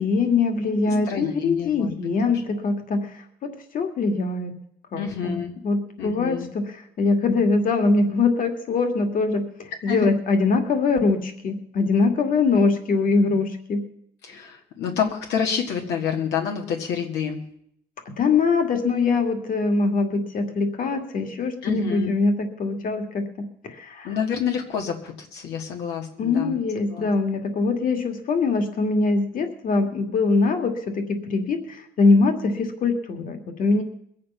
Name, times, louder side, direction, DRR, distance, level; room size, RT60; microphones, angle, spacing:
voice 1, 0.0-3.2 3.7-4.5 4.9-5.4 5.6-13.8 14.8-14.9 18.2-24.1 26.2-33.8, left 4 dB, 55° left, 6 dB, 2.3 m, -23 dB
voice 2, 1.1-2.4 5.0-5.5 6.0-6.5 9.8-10.1 14.2-17.4 21.6-22.1 24.0-26.6 26.9-27.1, left 7 dB, 85° left, 2 dB, 1.8 m, -28 dB
21.5 x 8.6 x 5.6 m, 0.72 s
cardioid pair, 110°, 17 cm